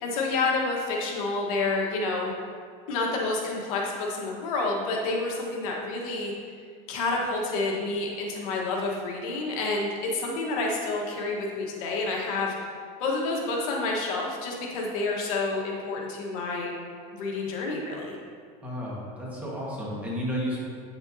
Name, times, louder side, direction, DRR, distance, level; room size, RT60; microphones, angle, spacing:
voice 1, 0.0-2.3 2.9-6.3 6.9-12.5 13.0-16.7 17.1-18.1, left 3 dB, 70° left, -2 dB, 1.4 m, -29 dB
voice 2, 18.6-20.6, equal, 5° right, -6 dB, 1.5 m, -32 dB
8.4 x 6.8 x 2.8 m, 2.1 s
supercardioid pair, 150°, 19 cm